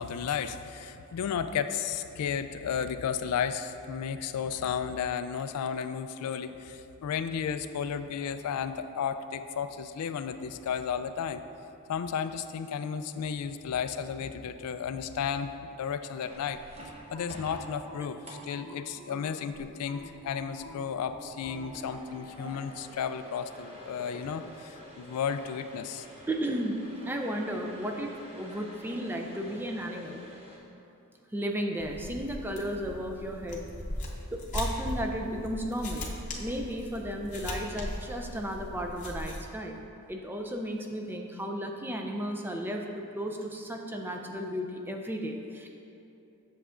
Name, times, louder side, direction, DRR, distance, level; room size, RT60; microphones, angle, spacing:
voice 1, 0.0-11.4 11.9-16.6 17.1-26.1, left 7 dB, 85° left, 10 dB, 0.3 m, -33 dB
sound 1, 16.2-30.6, equal, 30° right, 0.9 m, -49 dB
sound 2, 16.8-19.4 19.9-22.6, right 1 dB, 65° right, 1.5 m, -46 dB
voice 2, 26.3-26.8 27.1-30.2 31.3-33.6 34.3-36.1 36.4-39.8 40.1-45.7, equal, 10° right, 2 dB, 0.4 m, -34 dB
sound 3, 31.8-39.4, left 1 dB, 35° left, 0.8 m, -38 dB
7.9 x 6.8 x 2.5 m, 2.8 s
head